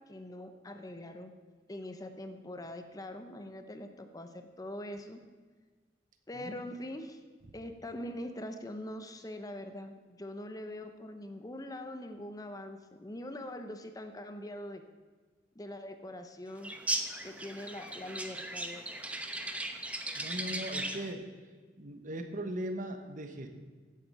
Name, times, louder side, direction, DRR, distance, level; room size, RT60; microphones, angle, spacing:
voice 1, 0.0-1.3 1.7-5.2 6.3-7.2 7.5-14.8 15.5-16.7 17.2-18.8, left 1 dB, 20° left, 7 dB, 0.7 m, -43 dB
sound 1, 16.6-21.1, right 1 dB, 10° right, 0.8 m, -37 dB
voice 2, 20.1-21.2 21.8-23.5, right 1 dB, 45° right, 6 dB, 1.2 m, -39 dB
15.5 x 7.5 x 5.5 m, 1.4 s
head